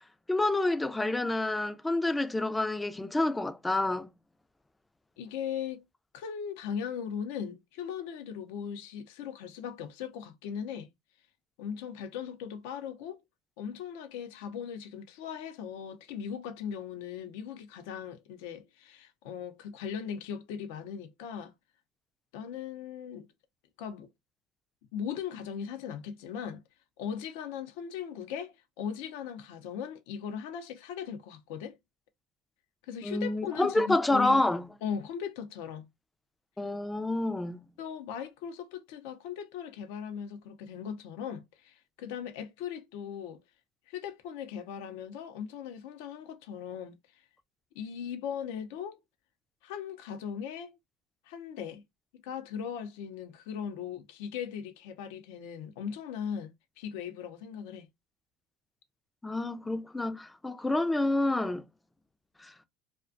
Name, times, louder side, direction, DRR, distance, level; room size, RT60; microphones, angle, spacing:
voice 1, 0.3-4.1 33.0-34.7 36.6-37.6 59.2-61.7 62.4-62.5, left 2 dB, 10° left, 0.3 m, -28 dB
voice 2, 5.2-5.8 6.1-10.9 11.6-13.2 13.6-21.5 22.3-23.3 23.8-24.1 24.9-26.6 27.0-31.8 32.8-34.4 34.8-35.9 37.8-43.4 43.9-46.9 47.7-49.0 49.6-50.8 51.3-51.8 52.1-56.5 56.8-57.9, left 8 dB, 80° left, 0.5 m, -38 dB
2.4 x 2.1 x 2.4 m
supercardioid pair, 110°, 0 cm